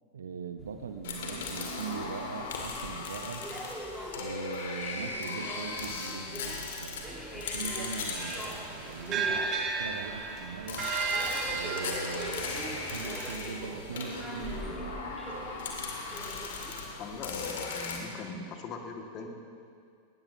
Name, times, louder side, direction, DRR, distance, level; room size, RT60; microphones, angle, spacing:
voice 1, 0.1-3.5 4.1-10.9 11.4-15.0, right 5 dB, 65° right, 8 dB, 0.9 m, -41 dB
sound 1, 0.6-17.3, equal, 5° right, 1.8 m, -45 dB
sound 2, 1.0-9.9 10.7-18.0, left 4 dB, 60° left, 2.4 m, -38 dB
sound 3, 8.1-13.3, right 5 dB, 30° right, 1.9 m, -34 dB
voice 2, 17.0-19.3, left 4 dB, 35° left, 2 dB, 2.0 m, -41 dB
20.5 x 19.0 x 2.9 m, 2.3 s
figure-of-eight pair, 90°, 0 cm